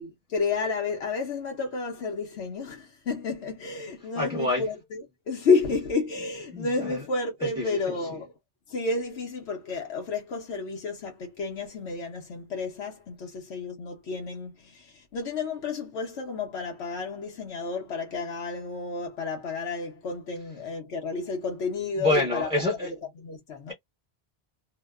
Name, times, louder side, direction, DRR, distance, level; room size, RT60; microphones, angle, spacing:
voice 1, 0.0-8.3 8.7-22.5 22.8-22.9 23.2-23.7, left 4 dB, 80° left, 1.0 m, -31 dB
voice 2, 4.2-4.6 6.5-7.0 7.4-7.8 22.0-22.9, left 1 dB, 5° right, 0.8 m, -27 dB
2.8 x 2.1 x 2.3 m
omnidirectional pair, 1.1 m